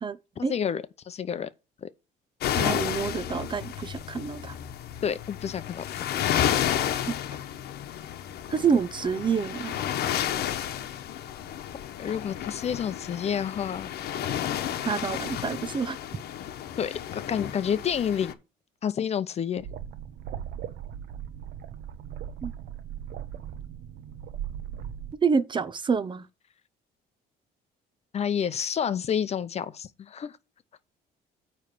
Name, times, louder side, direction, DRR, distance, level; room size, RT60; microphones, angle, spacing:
voice 1, 0.4-1.5 1.8-1.9 5.0-6.2 12.0-13.9 16.8-18.3 18.8-19.7 28.1-30.3, left 8 dB, 40° left, 0.7 m, -29 dB
sound 1, 2.4-18.3, left 10 dB, 70° left, 1.0 m, -32 dB
voice 2, 2.6-4.6 7.1-7.2 8.5-9.7 14.8-16.0 22.4-22.5 25.2-26.2, right 6 dB, 30° right, 0.6 m, -27 dB
sound 2, 19.6-25.1, right 9 dB, 75° right, 0.8 m, -38 dB
9.1 x 3.3 x 6.8 m
cardioid pair, 110°, 17 cm